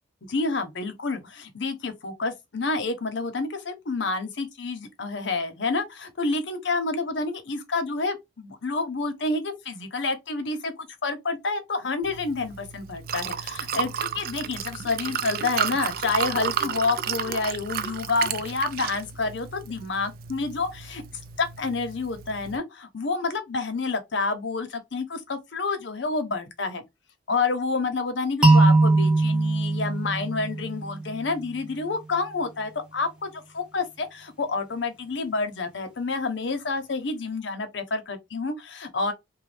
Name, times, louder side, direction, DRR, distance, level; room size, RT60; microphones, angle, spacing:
voice 1, 0.2-21.0 21.4-26.8 27.3-39.1, left 3 dB, 80° left, 0.8 m, -29 dB
Liquid, 12.0-22.6, right 8 dB, 55° right, 0.3 m, -32 dB
sound 1, 28.4-31.3, right 2 dB, 5° right, 0.9 m, -20 dB
3.0 x 2.2 x 3.2 m
head